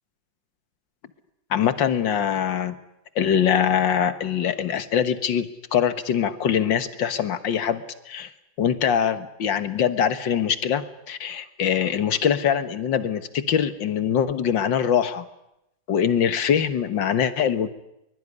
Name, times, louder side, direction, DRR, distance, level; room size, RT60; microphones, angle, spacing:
voice 1, 1.5-2.8 3.2-8.3 8.6-15.3 15.9-17.7, left 8 dB, 85° left, 11 dB, 2.1 m, -23 dB
23.0 x 22.5 x 9.8 m, 0.85 s
omnidirectional pair, 2.0 m